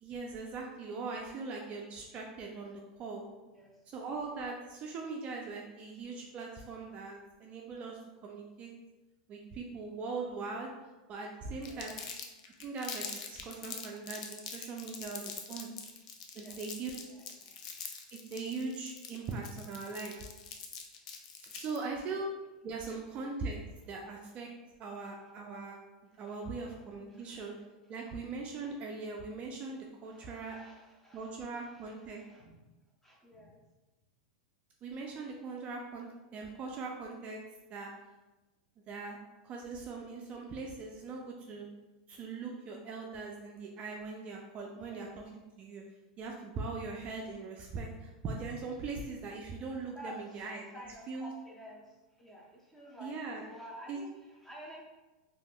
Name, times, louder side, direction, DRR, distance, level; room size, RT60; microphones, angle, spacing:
voice 1, 0.0-3.2 3.9-8.7 9.3-10.7 11.1-12.0 12.6-15.7 16.4-17.0 18.1-20.2 21.4-22.3 22.6-24.5 24.8-25.8 26.2-27.6 27.9-30.6 31.1-32.2 34.8-37.4 37.7-37.9 38.9-39.2 39.4-41.7 42.1-45.1 45.6-45.8 46.2-50.7 51.1-51.3 53.0-53.4 53.9-54.0, right 4 dB, 30° right, 0 dB, 0.3 m, -40 dB
voice 2, 3.4-3.8 11.4-12.0 16.3-16.6 16.9-17.5 21.5-21.8 24.9-25.3 26.1-26.8 27.1-27.5 28.0-28.2 28.6-28.7 30.0-32.5 33.0-33.6 44.8-45.1 49.9-50.5 50.7-53.2 53.4-54.8, equal, 5° left, -3 dB, 0.6 m, -52 dB
Crumpling crinkling, 11.6-21.8, left 6 dB, 65° left, 0.4 m, -44 dB
3.3 x 2.5 x 2.2 m, 1.1 s
supercardioid pair, 130°, 4 cm